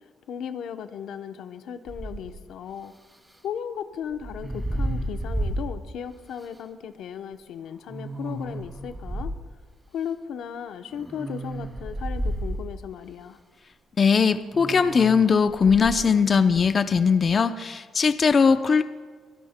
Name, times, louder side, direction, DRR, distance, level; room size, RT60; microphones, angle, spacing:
voice 1, 0.3-2.9 3.4-9.3 9.9-13.4, left 8 dB, 75° left, 9 dB, 0.7 m, -36 dB
sound 1, 1.9-2.4 4.1-5.8 6.4-6.5 7.9-9.4 10.9-12.8 14.5-16.0, right 1 dB, 15° right, 2.2 m, -32 dB
voice 2, 14.0-18.8, left 5 dB, 45° left, 10 dB, 0.5 m, -20 dB
23.0 x 17.5 x 2.2 m, 1.5 s
cardioid pair, 90°, 0 cm